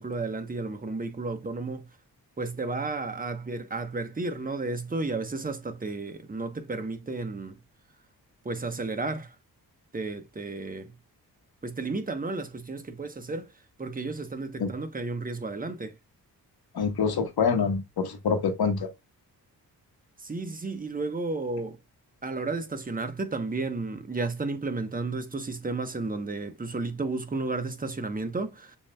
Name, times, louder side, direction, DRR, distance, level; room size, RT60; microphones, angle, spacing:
voice 1, 0.0-1.9 2.4-7.6 8.4-9.4 9.9-10.9 11.6-16.0 20.2-21.8 22.2-28.8, right 3 dB, 20° right, 0.9 m, -33 dB
voice 2, 16.7-18.9, left 5 dB, 70° left, 1.2 m, -26 dB
6.9 x 2.7 x 2.2 m
cardioid pair, 60°, 39 cm